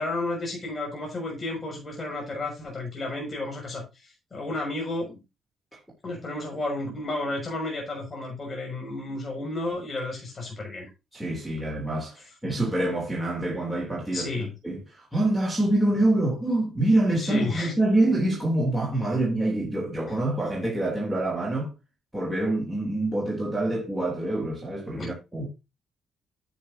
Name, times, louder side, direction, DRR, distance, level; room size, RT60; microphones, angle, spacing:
voice 1, 0.0-5.2 6.0-10.9 14.1-14.5 17.2-17.7 25.0-25.1, left 2 dB, 35° left, 6.3 m, -32 dB
voice 2, 11.1-14.3 14.6-21.7 22.1-25.5, right 1 dB, 5° right, 3.1 m, -26 dB
10.5 x 8.6 x 2.8 m
cardioid pair, 90°, 0 cm